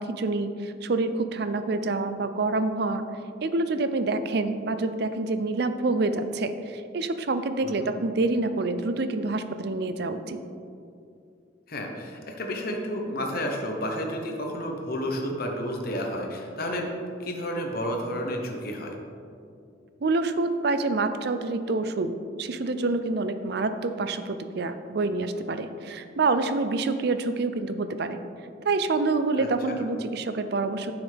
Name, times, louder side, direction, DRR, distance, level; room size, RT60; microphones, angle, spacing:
voice 1, 0.0-3.0 3.4-10.4 20.0-22.1 22.4-28.2 28.6-30.9, right 3 dB, 60° right, 10 dB, 0.5 m, -27 dB
voice 2, 11.7-16.9 17.2-18.9 29.4-29.8, equal, 55° left, 1 dB, 1.1 m, -31 dB
9.4 x 7.1 x 3.5 m, 2.4 s
head